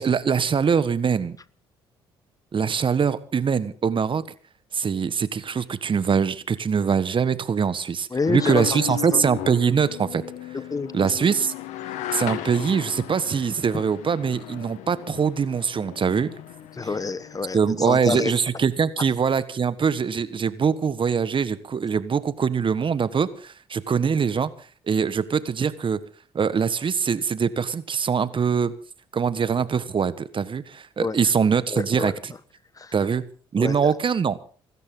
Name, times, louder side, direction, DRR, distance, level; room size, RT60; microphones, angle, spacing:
voice 1, 0.0-1.4 2.5-4.2 4.7-10.2 10.9-11.5 12.1-16.3 17.5-24.5 24.9-26.0 26.3-28.7 29.1-32.3 32.9-33.2 33.5-34.4, right 6 dB, 45° right, 15 dB, 1.5 m, -23 dB
voice 2, 8.1-8.8 9.1-9.2 10.5-11.3 16.7-17.6 17.9-18.3 31.0-31.2 31.7-32.1 32.8-32.9 33.6-33.9, left 4 dB, 30° left, 16 dB, 1.3 m, -28 dB
sound 1, 8.2-17.7, left 12 dB, 75° left, 1.9 m, -36 dB
25.5 x 13.5 x 3.9 m, 0.41 s
hypercardioid pair, 55°, 12 cm